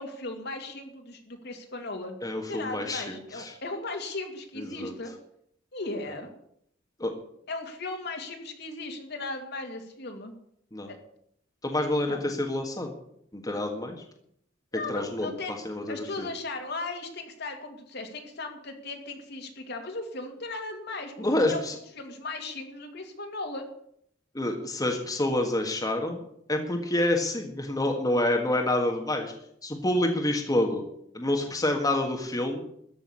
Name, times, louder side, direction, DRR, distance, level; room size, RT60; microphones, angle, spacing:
voice 1, 0.0-2.2 2.5-5.1 5.7-6.3 7.5-10.3 10.9-11.0 11.9-12.3 14.7-15.6 15.9-23.7, left 2 dB, 55° left, 4 dB, 2.4 m, -37 dB
voice 2, 2.2-3.5 4.6-4.9 7.0-7.1 10.7-10.9 11.6-12.9 13.3-14.0 14.9-15.3 15.6-16.3 21.2-21.7 24.3-26.2 26.5-29.3 29.6-30.8 31.1-32.6, left 1 dB, 20° left, 2 dB, 1.7 m, -27 dB
14.0 x 6.4 x 9.9 m, 0.70 s
head